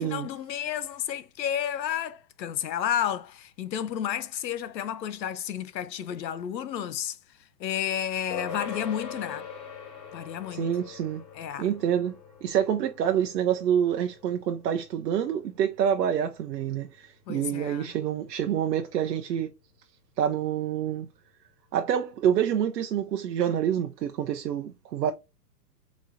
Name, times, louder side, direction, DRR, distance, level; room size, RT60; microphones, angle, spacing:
voice 1, 0.0-7.2 7.6-9.5 10.1-10.7 11.3-11.7 17.3-17.9, left 10 dB, 85° left, 0.6 m, -31 dB
sound 1, 8.3-18.0, left 6 dB, 45° left, 2.4 m, -43 dB
voice 2, 10.5-11.2 11.6-12.1 12.4-19.5 20.2-21.1 21.7-25.1, right 9 dB, 75° right, 0.7 m, -27 dB
3.9 x 3.0 x 2.6 m
hypercardioid pair, 140°, 49 cm